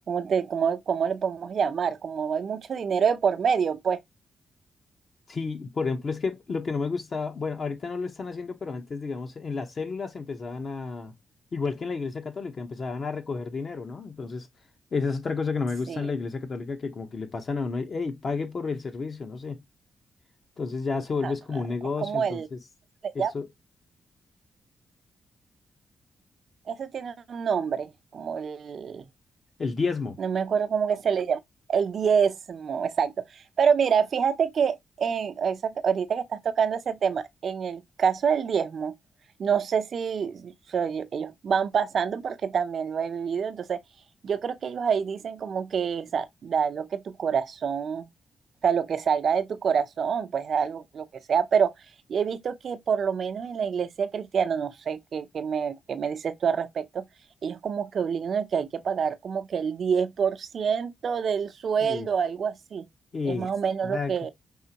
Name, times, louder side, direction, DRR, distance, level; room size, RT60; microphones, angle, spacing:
voice 1, 0.1-4.0 15.9-16.0 21.2-21.3 22.0-22.5 23.0-23.3 26.7-29.1 30.2-31.4 31.7-38.9 39.4-43.8 44.2-48.1 48.6-51.7 52.1-57.0 57.4-62.8 63.3-64.3, right 7 dB, 65° right, 0.7 m, -27 dB
voice 2, 5.3-11.1 11.5-14.5 14.9-19.6 20.6-22.6 23.1-23.5 29.6-30.2 61.8-62.1 63.1-63.5 63.8-64.1, left 4 dB, 50° left, 1.0 m, -31 dB
5.5 x 3.2 x 2.9 m
cardioid pair, 80°, 0 cm